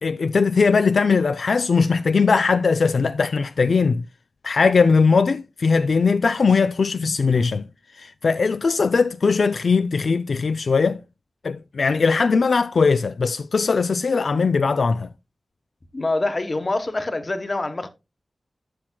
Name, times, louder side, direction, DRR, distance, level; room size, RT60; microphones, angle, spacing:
voice 1, 0.0-4.1 4.4-7.7 8.0-11.0 11.4-15.1, left 4 dB, 75° left, 0.3 m, -20 dB
voice 2, 15.9-17.9, left 2 dB, 40° left, 1.1 m, -25 dB
12.0 x 7.4 x 2.2 m
wide cardioid pair, 80°, 0 cm